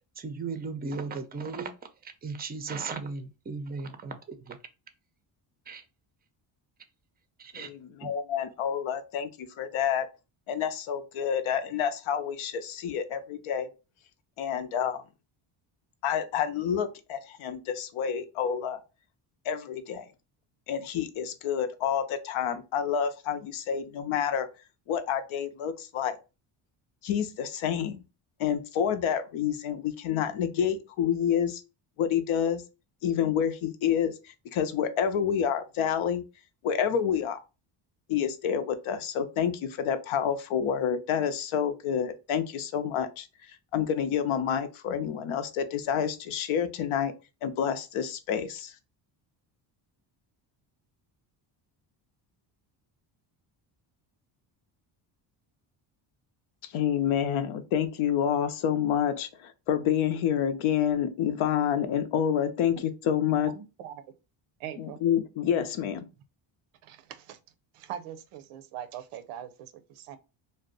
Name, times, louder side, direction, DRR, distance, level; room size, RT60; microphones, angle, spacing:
voice 1, 0.1-1.7 2.0-4.6 5.7-5.8 7.4-7.7 8.0-8.1, right 4 dB, 20° right, 0.4 m, -36 dB
voice 2, 7.5-9.3 9.6-10.1 10.5-13.7 14.4-15.0 16.0-18.8 19.4-20.1 20.7-24.5 24.9-26.2 27.0-28.0 28.4-31.6 32.0-32.6 33.0-34.1 34.5-36.2 36.6-37.4 38.1-43.3 43.7-47.1 47.4-48.7 56.7-63.5 64.8-66.1, left 8 dB, 75° left, 0.7 m, -28 dB
voice 3, 63.5-64.0 64.6-65.0 66.8-67.4 67.7-70.2, right 10 dB, 90° right, 0.6 m, -42 dB
2.6 x 2.1 x 3.7 m
cardioid pair, 90°, 50 cm